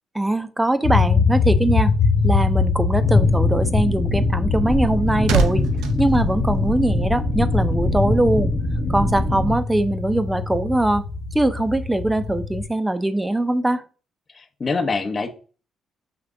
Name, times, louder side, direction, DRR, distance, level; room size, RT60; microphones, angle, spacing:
voice 1, 0.1-1.9 2.2-5.7 6.0-8.5 8.9-11.0 11.3-13.8, right 1 dB, 10° right, 0.5 m, -21 dB
sound 1, 0.8-12.7, left 4 dB, 85° left, 1.0 m, -23 dB
sound 2, 3.0-9.5, left 2 dB, 60° left, 1.1 m, -23 dB
sound 3, 4.5-7.2 7.5-7.7, right 5 dB, 90° right, 0.5 m, -26 dB
voice 2, 14.3-15.3, left 4 dB, 35° left, 0.8 m, -24 dB
5.9 x 3.2 x 2.5 m
cardioid pair, 90°, 0 cm